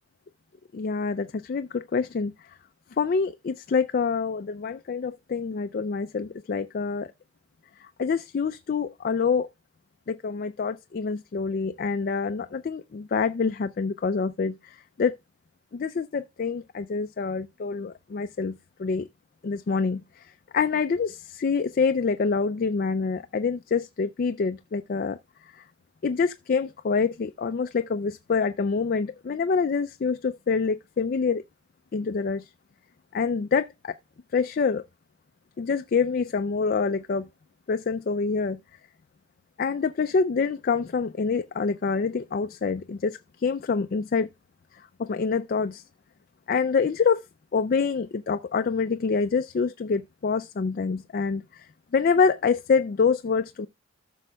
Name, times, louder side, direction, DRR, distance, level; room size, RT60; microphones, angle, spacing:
voice 1, 0.7-2.3 3.0-7.1 7.8-9.5 10.1-15.2 15.7-19.1 19.4-20.2 20.5-25.2 25.5-25.6 26.0-31.4 31.9-32.5 33.1-33.9 34.3-34.8 35.6-37.3 37.7-38.6 39.6-44.3 45.0-45.8 46.5-47.2 47.5-51.6 51.9-53.7, left 5 dB, 45° left, 0.3 m, -26 dB
14.0 x 6.1 x 2.3 m
head